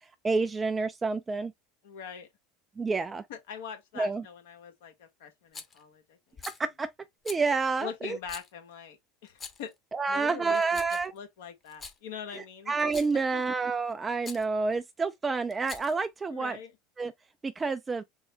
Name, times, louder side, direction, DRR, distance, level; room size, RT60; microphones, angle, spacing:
voice 1, 0.2-1.5 2.8-3.2 4.0-4.2 6.6-6.9 7.2-8.2 9.9-11.1 12.3-16.6 17.0-17.1 17.4-18.0, right 4 dB, 20° right, 0.4 m, -29 dB
voice 2, 1.8-2.3 3.3-6.2 7.8-9.0 9.2-9.7 10.1-12.7 13.3-13.4 16.3-16.7, left 7 dB, 75° left, 1.2 m, -42 dB
Rattle, 5.5-5.8 6.4-6.6 7.3-7.4 8.3-8.5 9.3-9.7 10.5-11.2 11.7-12.0 12.8-13.2 14.2-14.5 15.5-16.1, left 5 dB, 30° left, 1.0 m, -44 dB
3.8 x 2.1 x 4.3 m
hypercardioid pair, 80°, 0 cm